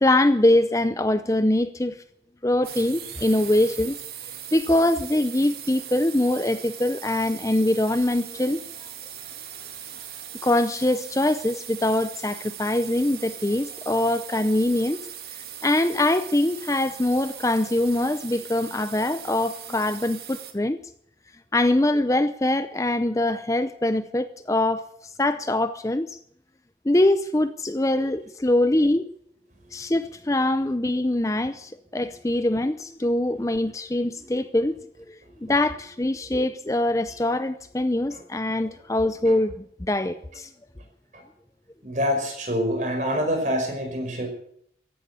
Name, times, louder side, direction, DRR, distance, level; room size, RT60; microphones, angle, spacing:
voice 1, 0.0-2.0 2.4-4.0 4.5-8.6 10.4-15.0 15.6-20.8 21.5-24.9 25.2-26.2 26.9-29.1 29.7-34.7 35.1-35.2 35.4-39.5 39.8-40.5, left 1 dB, 20° left, 0.6 m, -23 dB
sound 1, 2.6-20.5, right 10 dB, 60° right, 2.2 m, -40 dB
voice 2, 41.8-44.3, equal, 45° right, 5.4 m, -26 dB
15.5 x 11.0 x 8.3 m
head